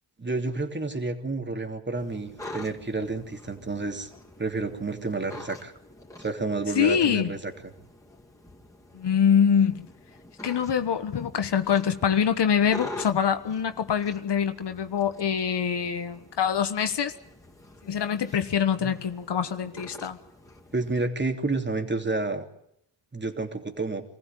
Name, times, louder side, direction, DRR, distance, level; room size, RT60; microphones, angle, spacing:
voice 1, 0.2-4.1 4.4-5.7 6.2-7.5 18.8-18.9 20.7-22.5 23.1-24.0, right 3 dB, 25° right, 5 dB, 3.1 m, -30 dB
sound 1, 1.9-21.1, left 2 dB, 10° left, 3.5 m, -46 dB
voice 2, 6.7-7.3 8.9-9.8 10.4-17.1 17.8-20.2, left 8 dB, 70° left, 9 dB, 1.4 m, -24 dB
25.5 x 15.5 x 9.2 m, 0.76 s
cardioid pair, 70°, 42 cm